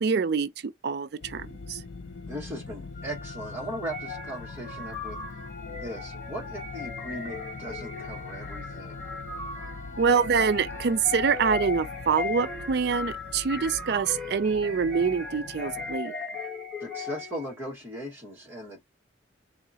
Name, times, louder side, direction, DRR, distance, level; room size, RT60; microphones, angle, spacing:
voice 1, 0.0-1.8 10.0-16.1, right 6 dB, 55° right, 0.4 m, -25 dB
sound 1, 1.2-16.0, left 3 dB, 60° left, 0.5 m, -43 dB
voice 2, 2.3-5.2 5.7-9.0 16.8-18.9, equal, 10° right, 1.7 m, -38 dB
Wind instrument woodwind instrument, 2.9-11.6, left 6 dB, 40° left, 0.9 m, -48 dB
sound 2, 3.9-17.5, left 4 dB, 5° left, 1.1 m, -38 dB
3.7 x 2.9 x 2.7 m
head